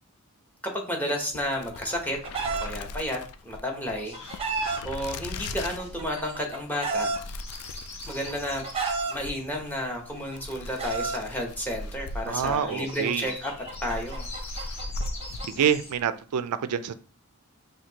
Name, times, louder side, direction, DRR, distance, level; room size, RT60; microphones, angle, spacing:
voice 1, 0.6-2.2 2.5-4.4 4.8-7.1 8.1-8.6 9.1-13.5 13.8-14.3, equal, 10° left, 2 dB, 0.9 m, -32 dB
sound 1, 1.2-16.1, left 2 dB, 75° left, 0.4 m, -40 dB
Chicken rooster, 1.5-2.7 3.8-4.8 5.8-7.2 8.1-9.1 10.1-11.2 12.3-15.6, right 4 dB, 25° right, 0.7 m, -32 dB
sound 2, 4.0-15.9, left 2 dB, 30° left, 1.3 m, -46 dB
voice 2, 12.3-13.3 15.5-16.9, right 8 dB, 90° right, 12 dB, 0.4 m, -26 dB
5.8 x 2.7 x 2.8 m, 0.38 s
head